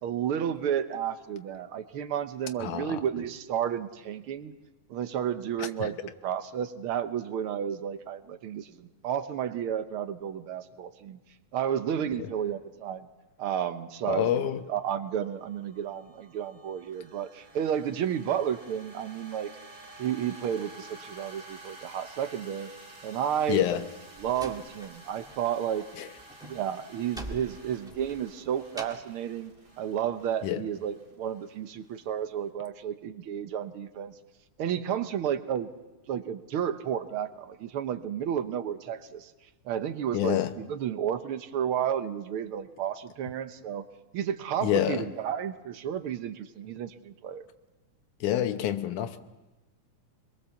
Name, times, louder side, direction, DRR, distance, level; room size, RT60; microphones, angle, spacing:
voice 1, 0.0-4.5 4.9-11.2 11.5-13.1 13.4-19.5 20.0-22.7 23.0-23.6 24.2-25.9 26.4-29.5 29.8-34.1 34.6-35.7 36.1-39.3 39.6-43.8 44.1-47.4, right 9 dB, 65° right, 1.4 m, -32 dB
voice 2, 2.6-3.0 5.6-5.9 12.2-12.3 14.1-14.6 23.5-23.8 26.0-26.1 30.4-30.6 40.1-40.6 44.6-45.0 48.2-49.2, left 11 dB, 90° left, 2.5 m, -27 dB
sound 1, 14.6-32.4, right 2 dB, 30° right, 3.6 m, -51 dB
Slam, 23.6-25.4 25.7-29.2, equal, ahead, 1.3 m, -45 dB
26.0 x 22.0 x 7.1 m
omnidirectional pair, 3.4 m